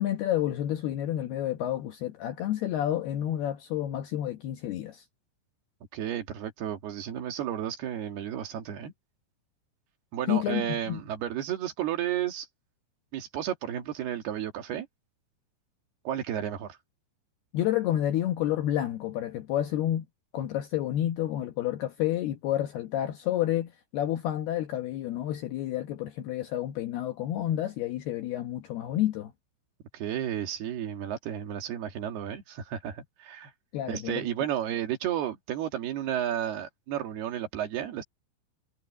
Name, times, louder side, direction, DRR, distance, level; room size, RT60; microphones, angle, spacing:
voice 1, 0.0-5.0 10.3-11.0 17.5-20.0 20.3-29.3 33.7-34.3, left 12 dB, 75° left, 2.4 m, -30 dB
voice 2, 5.9-8.9 10.1-12.5 13.1-14.9 16.1-16.7 29.9-33.5 33.9-38.0, right 10 dB, 60° right, 3.7 m, -32 dB
omnidirectional pair, 5.9 m